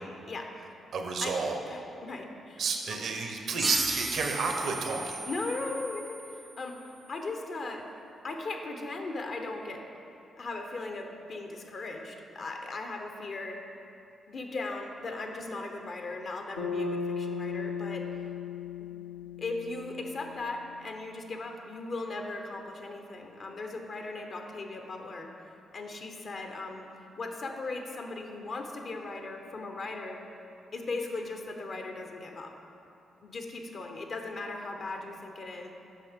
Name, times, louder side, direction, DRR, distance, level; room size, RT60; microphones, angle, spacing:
voice 1, 0.9-1.6 2.6-5.2, right 4 dB, 65° right, 3 dB, 0.8 m, -31 dB
voice 2, 1.6-3.3 5.3-7.9 8.2-9.8 10.4-13.6 14.3-18.2 18.8-18.9 19.4-25.3 25.7-26.9 27.2-30.2 30.7-32.6 33.2-35.7, left 3 dB, 60° left, 3 dB, 0.7 m, -38 dB
sound 1, 3.6-6.8, right 2 dB, 30° right, 0.5 m, -35 dB
Bass guitar, 16.6-20.9, left 5 dB, 90° left, 0.8 m, -36 dB
8.2 x 5.6 x 3.6 m, 2.7 s
supercardioid pair, 50°, 0 cm